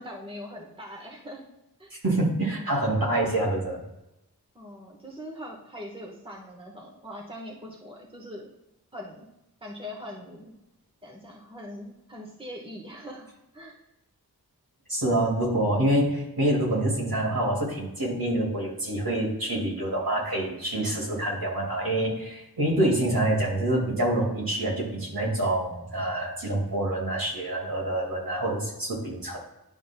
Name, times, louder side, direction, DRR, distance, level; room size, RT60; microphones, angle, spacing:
voice 1, 0.0-1.5 1.8-1.9 4.5-8.5 8.9-9.3 9.6-10.5 11.0-13.3 13.5-13.8, equal, 15° right, -2 dB, 1.3 m, -41 dB
voice 2, 2.0-3.8 14.9-29.4, right 1 dB, 60° right, -3 dB, 2.4 m, -26 dB
10.5 x 5.3 x 2.2 m, 0.91 s
wide cardioid pair, 50°, 39 cm